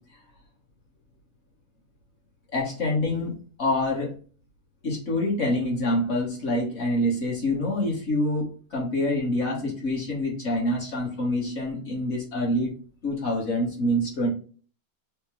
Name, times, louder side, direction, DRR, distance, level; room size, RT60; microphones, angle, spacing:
voice 1, 2.5-3.3 3.6-4.1 4.8-12.7 13.0-14.3, left 1 dB, 45° left, -3 dB, 1.0 m, -26 dB
4.8 x 2.1 x 3.0 m, 0.41 s
omnidirectional pair, 2.3 m